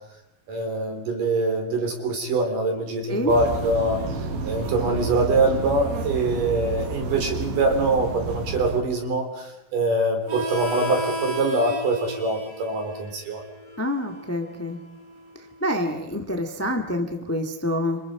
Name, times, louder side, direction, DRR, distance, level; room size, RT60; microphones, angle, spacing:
voice 1, 0.5-4.0 4.4-13.4, right 2 dB, 65° right, 3 dB, 5.3 m, -24 dB
sound 1, 3.3-8.8, right 3 dB, 85° right, 3.9 m, -30 dB
Harmonica, 10.3-15.5, right 1 dB, 25° right, 3.2 m, -34 dB
voice 2, 13.8-14.8 15.6-18.0, left 1 dB, 10° left, 4 dB, 0.6 m, -27 dB
30.0 x 26.5 x 4.9 m, 0.86 s
omnidirectional pair, 4.2 m